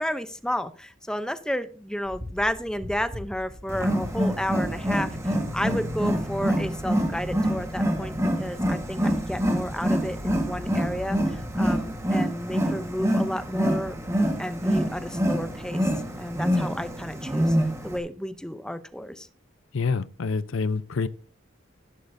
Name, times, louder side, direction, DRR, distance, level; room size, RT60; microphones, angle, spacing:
voice 1, 0.0-8.1 8.4-14.0 14.4-15.9 16.2-17.6 17.8-19.3, equal, 5° left, 0.6 m, -32 dB
sound 1, 2.0-12.0, equal, 40° right, 2.7 m, -41 dB
Wild animals, 3.7-18.0, equal, 15° right, 1.4 m, -26 dB
voice 2, 19.7-21.1, left 4 dB, 85° left, 0.6 m, -27 dB
11.5 x 11.5 x 2.6 m
head